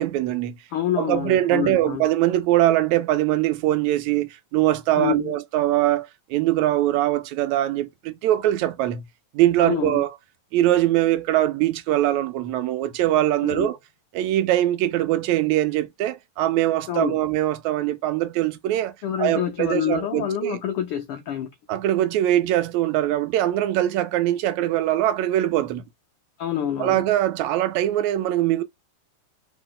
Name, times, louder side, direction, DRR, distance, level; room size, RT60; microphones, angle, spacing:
voice 1, 0.0-0.6 1.0-9.0 9.3-10.1 10.5-13.8 14.1-18.9 19.2-20.6 21.7-25.8 26.8-28.6, right 14 dB, 80° right, 1.9 m, -22 dB
voice 2, 0.7-2.0 5.0-5.3 9.6-10.0 13.4-13.7 16.9-17.2 19.0-21.5 26.4-27.0, left 10 dB, 85° left, 1.2 m, -27 dB
4.3 x 2.9 x 3.7 m
omnidirectional pair, 3.3 m